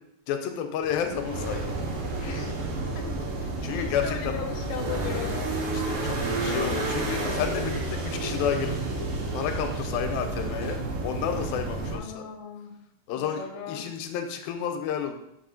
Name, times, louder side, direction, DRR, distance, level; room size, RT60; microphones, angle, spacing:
voice 1, 0.3-1.6 3.6-4.4 5.7-8.8 9.3-12.3 13.1-15.1, left 8 dB, 90° left, 6 dB, 2.5 m, -31 dB
sound 1, 0.7-12.0, right 2 dB, 70° right, 2.9 m, -30 dB
voice 2, 2.2-2.6 2.9-5.5 6.2-6.8 11.9-12.7 13.2-13.9, left 7 dB, 65° left, 1 dB, 2.0 m, -38 dB
5.5 x 5.4 x 5.2 m, 0.82 s
omnidirectional pair, 4.2 m